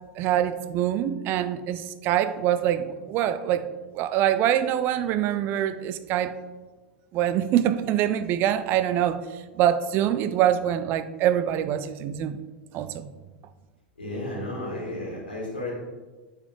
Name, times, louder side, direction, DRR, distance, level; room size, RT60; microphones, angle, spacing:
voice 1, 0.2-3.6 3.9-6.3 7.1-9.2 9.6-12.4 12.7-13.1, right 11 dB, 40° right, 11 dB, 0.5 m, -24 dB
voice 2, 14.0-15.7, left 1 dB, 80° left, -4 dB, 2.2 m, -33 dB
8.2 x 5.5 x 3.7 m, 1.3 s
figure-of-eight pair, 85°, 5 cm